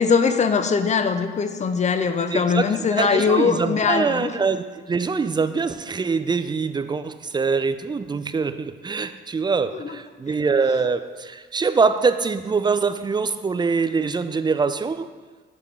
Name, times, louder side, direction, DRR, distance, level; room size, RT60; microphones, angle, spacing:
voice 1, 0.0-4.3 9.7-10.0, left 5 dB, 35° left, 9 dB, 0.6 m, -21 dB
voice 2, 2.3-15.1, right 4 dB, 20° right, 10 dB, 0.4 m, -24 dB
7.3 x 4.8 x 5.2 m, 1.4 s
cardioid pair, 90°, 20 cm